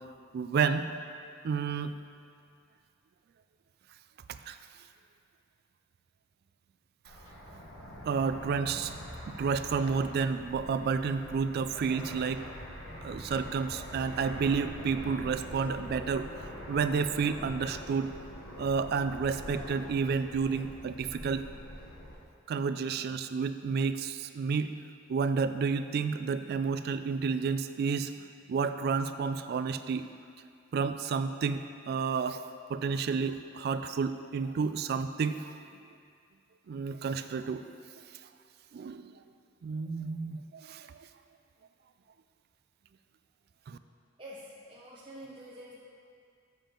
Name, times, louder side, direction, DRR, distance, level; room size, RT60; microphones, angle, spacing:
voice 1, 0.3-0.8 1.4-1.9 4.5-4.6 8.0-8.9 9.4-12.5 13.0-16.3 16.7-18.1 18.6-21.5 22.5-24.8 25.1-28.1 28.5-30.1 30.7-32.4 32.7-35.5 36.7-37.6 38.7-39.1 39.6-41.0 43.7-43.8, right 5 dB, 50° right, 11 dB, 0.3 m, -30 dB
Fixed-wing aircraft airplane, 7.0-22.2, equal, 85° left, 1.4 m, -44 dB
voice 2, 44.2-45.7, equal, 25° right, -8 dB, 0.8 m, -47 dB
7.2 x 7.1 x 3.8 m, 2.3 s
head